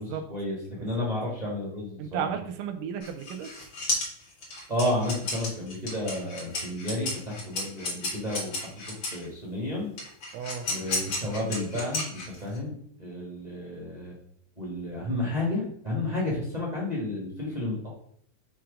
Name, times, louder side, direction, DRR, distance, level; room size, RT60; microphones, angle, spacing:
voice 1, 0.0-2.3 4.7-9.9 10.7-14.1 14.6-17.9, left 1 dB, 70° right, -5 dB, 0.4 m, -32 dB
voice 2, 0.8-1.1 2.0-3.5 10.3-10.7, right 8 dB, 85° right, 9 dB, 2.2 m, -34 dB
sound 1, 3.0-9.2 10.0-12.6, left 2 dB, 45° left, 2.0 m, -33 dB
6.0 x 3.3 x 5.0 m, 0.65 s
omnidirectional pair, 3.6 m